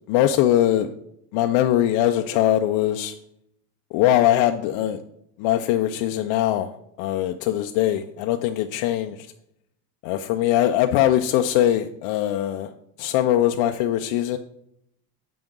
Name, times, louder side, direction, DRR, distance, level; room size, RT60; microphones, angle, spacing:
voice 1, 0.1-0.9 1.3-3.1 3.9-5.0 5.4-9.3 10.0-12.7 13.0-14.4, left 12 dB, 65° left, 6 dB, 0.6 m, -21 dB
9.0 x 5.1 x 3.7 m, 0.76 s
supercardioid pair, 115°, 48 cm